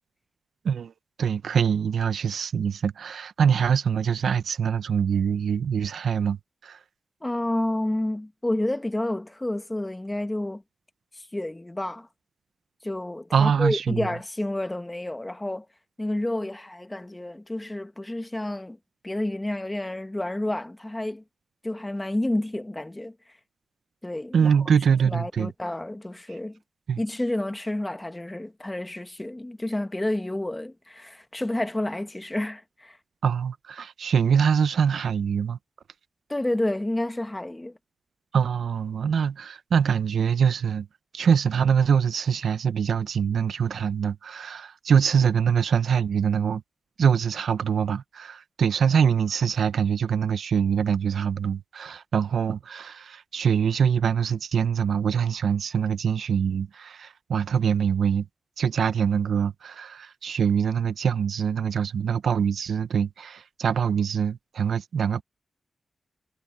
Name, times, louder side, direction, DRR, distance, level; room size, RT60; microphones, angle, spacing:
voice 1, 1.2-6.4 6.6-6.8 13.3-14.1 24.3-25.5 26.9-27.0 33.2-35.6 38.3-40.9 41.1-46.6 47.0-58.3 58.6-65.2, right 7 dB, 85° right, 0.7 m, -24 dB
voice 2, 7.2-10.6 11.1-12.1 12.8-15.7 16.0-18.8 19.0-21.2 21.6-23.1 24.0-24.5 25.0-26.6 27.0-33.0 36.3-37.8, left 1 dB, 15° left, 1.5 m, -30 dB
cardioid pair, 75°, 0 cm